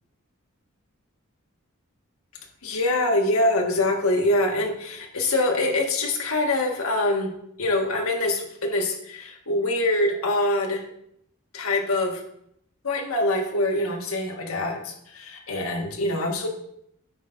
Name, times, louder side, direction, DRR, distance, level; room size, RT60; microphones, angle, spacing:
voice 1, 2.6-7.3 7.6-10.8 11.5-12.2 12.8-16.5, left 2 dB, 85° left, 2 dB, 1.6 m, -24 dB
10.5 x 8.4 x 2.6 m, 0.72 s
head